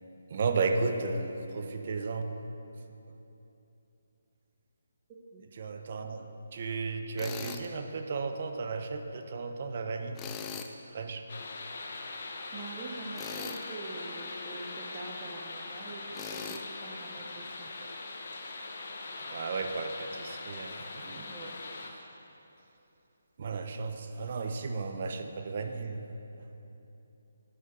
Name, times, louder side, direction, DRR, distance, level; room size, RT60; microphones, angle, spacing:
voice 1, 0.3-2.3 5.6-6.3 6.5-10.2 10.9-11.2 19.2-21.3 23.4-26.0 26.4-26.5, right 4 dB, 45° right, 6 dB, 0.6 m, -34 dB
Tools, 7.2-7.7 10.2-10.7 13.1-13.7 16.1-16.6, left 7 dB, 15° left, 0.4 m, -40 dB
sound 1, 11.3-21.9, left 3 dB, 55° left, 0.8 m, -41 dB
voice 2, 12.5-17.7 21.2-21.6, right 3 dB, 25° right, 0 dB, 0.9 m, -44 dB
7.9 x 4.9 x 6.1 m, 2.9 s
figure-of-eight pair, 150°, 0 cm